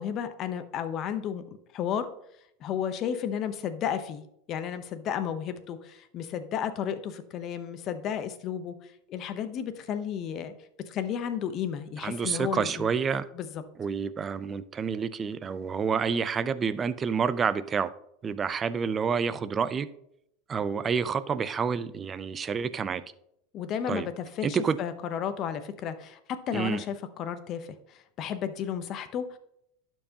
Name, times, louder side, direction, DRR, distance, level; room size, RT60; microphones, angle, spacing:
voice 1, 0.0-1.4 1.7-2.1 2.6-4.2 4.5-10.5 10.9-12.9 13.3-13.6 23.5-26.2 26.5-29.4, left 8 dB, 45° left, 10 dB, 0.8 m, -33 dB
voice 2, 12.0-13.3 13.8-17.9 18.2-19.9 20.5-23.0 23.9-24.1 24.4-24.8 26.5-26.8, right 6 dB, 25° right, 15 dB, 0.4 m, -28 dB
11.5 x 4.6 x 2.9 m, 0.74 s
supercardioid pair, 120°, 0 cm